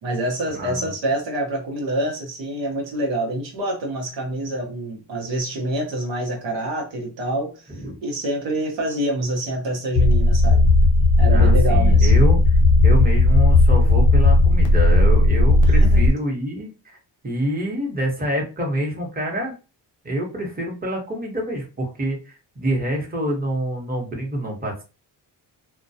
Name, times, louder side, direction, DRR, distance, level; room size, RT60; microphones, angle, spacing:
voice 1, 0.0-7.6 8.0-10.6 11.2-12.1 15.6-16.1, right 1 dB, 85° right, 1 dB, 0.9 m, -26 dB
voice 2, 0.5-0.9 7.7-8.0 11.3-12.4 12.8-17.0 17.2-19.5 20.0-24.8, right 1 dB, 20° right, 0 dB, 0.9 m, -26 dB
sound 1, 10.0-16.1, left 2 dB, 80° left, 0.7 m, -15 dB
2.2 x 2.1 x 2.7 m, 0.32 s
cardioid pair, 85°, 43 cm